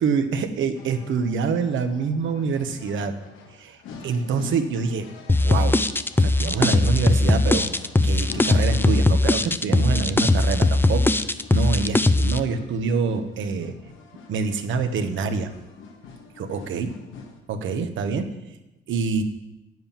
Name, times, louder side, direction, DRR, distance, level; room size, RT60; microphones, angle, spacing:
voice 1, 0.0-3.1 3.5-5.1 5.4-5.8 6.2-7.7 8.0-11.1 11.5-13.8 14.3-15.5 16.4-16.9 17.5-18.3 18.9-19.2, right 5 dB, 75° right, 7 dB, 1.2 m, -26 dB
sound 1, 0.7-17.4, left 4 dB, 90° left, 1.7 m, -45 dB
sound 2, 5.3-12.4, left 2 dB, 10° left, 0.5 m, -19 dB
8.9 x 7.9 x 7.3 m, 0.93 s
cardioid pair, 90°, 20 cm